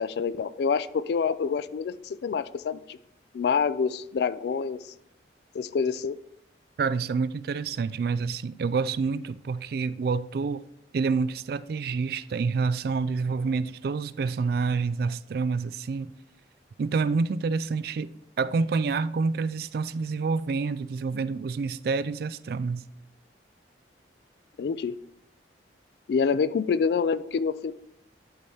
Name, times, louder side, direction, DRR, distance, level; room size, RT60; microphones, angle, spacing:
voice 1, 0.0-3.0 3.3-4.8 5.5-6.2 24.6-24.9 26.1-27.7, left 5 dB, 60° left, 0.3 m, -27 dB
voice 2, 6.8-10.6 10.9-16.1 16.8-18.1 18.4-22.8, right 4 dB, 55° right, 0.3 m, -28 dB
11.5 x 4.2 x 3.4 m
head